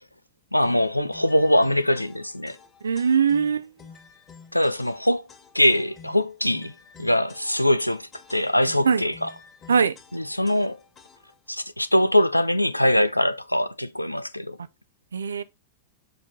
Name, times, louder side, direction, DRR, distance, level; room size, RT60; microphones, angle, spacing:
voice 1, 0.5-2.6 4.5-5.2 5.5-6.7 7.0-9.3 10.1-10.8 11.5-14.6, left 1 dB, 90° left, 0.6 m, -22 dB
sound 1, 0.6-11.5, left 5 dB, 25° left, 2.0 m, -50 dB
voice 2, 2.8-3.7 8.8-9.0 9.7-10.0 15.1-15.4, right 6 dB, 70° right, 0.6 m, -21 dB
6.9 x 5.1 x 3.8 m
figure-of-eight pair, 90°, 0 cm